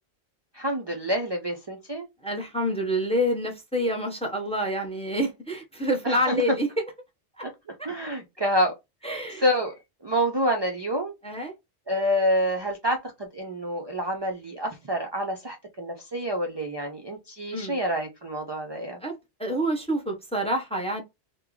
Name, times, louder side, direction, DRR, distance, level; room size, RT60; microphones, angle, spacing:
voice 1, 0.5-2.1 6.0-6.4 7.4-7.5 7.8-8.7 9.0-9.8 10.0-11.1 11.9-19.0, equal, 35° right, 0.4 m, -27 dB
voice 2, 2.2-6.7 7.4-7.5 7.8-7.9 9.0-9.4 11.2-11.5 17.5-17.8 19.0-21.0, equal, 5° left, 0.6 m, -27 dB
3.1 x 2.1 x 3.7 m
omnidirectional pair, 1.1 m